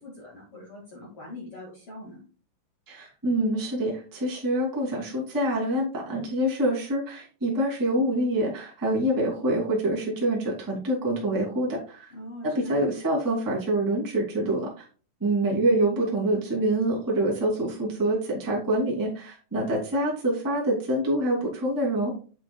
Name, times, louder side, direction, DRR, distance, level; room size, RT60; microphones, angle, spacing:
voice 1, 0.0-2.2 12.1-12.8, left 1 dB, 45° left, -3 dB, 1.8 m, -43 dB
voice 2, 2.9-12.1 12.4-14.8 15.2-22.2, right 1 dB, 10° right, -4 dB, 0.8 m, -26 dB
7.8 x 7.8 x 2.3 m, 0.38 s
omnidirectional pair, 5.9 m